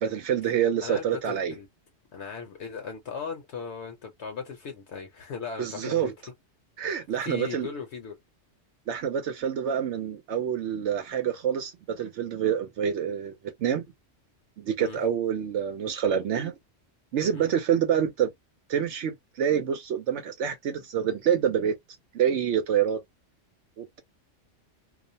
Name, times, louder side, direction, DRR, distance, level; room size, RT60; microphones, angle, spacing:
voice 1, 0.0-1.5 5.6-6.1 6.8-7.7 8.9-13.8 14.6-16.6 17.1-18.3 18.7-21.8 22.1-23.0 23.8-24.0, right 8 dB, 70° right, 0.9 m, -27 dB
voice 2, 0.8-1.7 2.1-6.1 6.8-8.2 14.8-15.0 17.3-17.5, left 6 dB, 65° left, 0.9 m, -38 dB
2.4 x 2.1 x 2.6 m
omnidirectional pair, 1.3 m